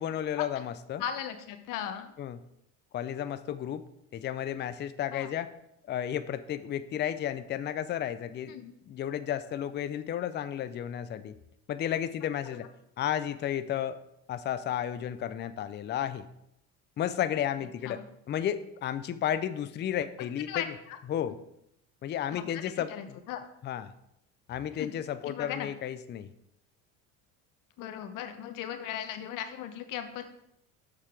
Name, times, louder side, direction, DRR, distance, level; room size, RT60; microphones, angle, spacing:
voice 1, 0.0-1.0 2.2-2.4 2.9-3.8 4.1-5.5 5.9-8.5 8.9-11.4 11.7-12.7 13.0-14.0 14.3-16.3 17.0-18.0 18.3-20.7 21.1-21.4 22.0-23.2 23.6-23.9 24.5-26.3, left 10 dB, 30° left, 12 dB, 0.4 m, -32 dB
voice 2, 1.0-2.1 5.1-5.3 8.5-8.7 17.8-18.1 20.5-21.0 22.3-22.6 22.9-23.4 24.7-24.9 25.2-25.7 27.8-30.2, left 9 dB, 65° left, 8 dB, 1.0 m, -37 dB
6.7 x 5.6 x 4.7 m, 0.79 s
supercardioid pair, 105°, 35 cm